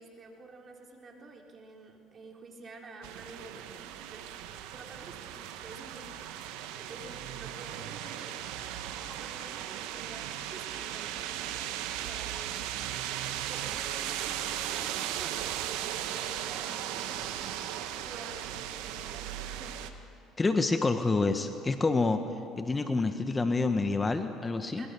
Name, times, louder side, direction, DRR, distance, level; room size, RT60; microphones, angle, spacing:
voice 1, 0.0-4.4 4.7-8.4 8.8-13.0 13.5-17.2 17.5-19.8 24.8-24.9, right 3 dB, 40° right, 1 dB, 3.8 m, -49 dB
sound 1, 3.0-19.9, right 11 dB, 80° right, 1.2 m, -37 dB
voice 2, 20.4-22.2 22.6-24.8, left 3 dB, 20° left, 8 dB, 1.3 m, -27 dB
22.5 x 20.5 x 7.0 m, 2.5 s
supercardioid pair, 80°, 0 cm